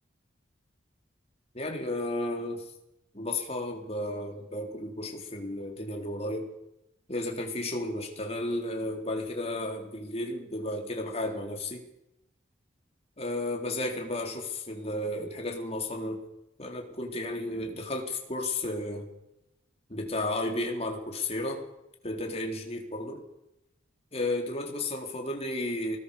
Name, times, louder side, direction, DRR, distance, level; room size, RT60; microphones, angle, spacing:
voice 1, 1.5-2.6 3.1-6.5 7.1-11.8 13.2-16.2 16.6-19.1 19.9-21.6 22.0-23.2 24.1-26.0, left 1 dB, 35° left, 2 dB, 4.0 m, -33 dB
25.0 x 20.5 x 7.1 m, 0.86 s
head